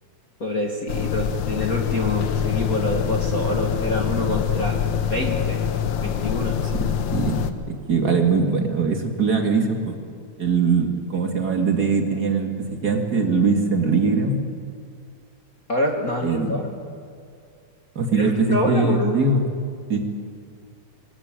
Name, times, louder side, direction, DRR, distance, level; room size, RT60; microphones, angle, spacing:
voice 1, 0.4-4.8 5.1-5.6 6.0-6.6 15.7-16.7 18.1-19.2, left 1 dB, 30° left, 1 dB, 1.9 m, -26 dB
sound 1, 0.9-7.5, left 8 dB, 85° left, 1.0 m, -24 dB
voice 2, 6.8-7.4 7.7-10.0 10.4-14.4 16.2-16.6 18.0-19.4 19.9-20.0, right 4 dB, 35° right, 3 dB, 2.2 m, -21 dB
25.0 x 20.0 x 9.0 m, 2.2 s
omnidirectional pair, 3.6 m